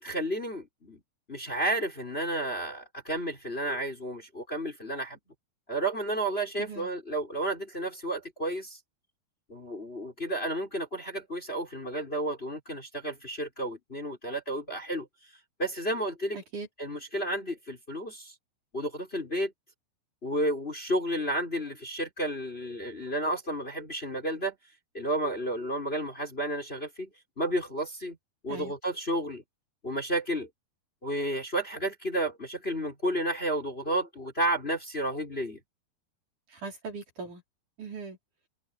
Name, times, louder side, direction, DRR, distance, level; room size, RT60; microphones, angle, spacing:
voice 1, 0.0-1.0 1.3-5.2 5.7-8.8 9.5-15.1 15.6-16.4 16.8-18.3 18.7-19.5 20.2-24.5 24.9-27.1 27.4-28.2 28.4-29.4 29.8-30.5 31.0-35.6, right 1 dB, 15° left, 5.0 m, -32 dB
voice 2, 16.3-16.7 28.5-28.7 36.5-37.4 37.8-38.2, right 4 dB, 50° right, 5.5 m, -39 dB
open air
omnidirectional pair, 4.8 m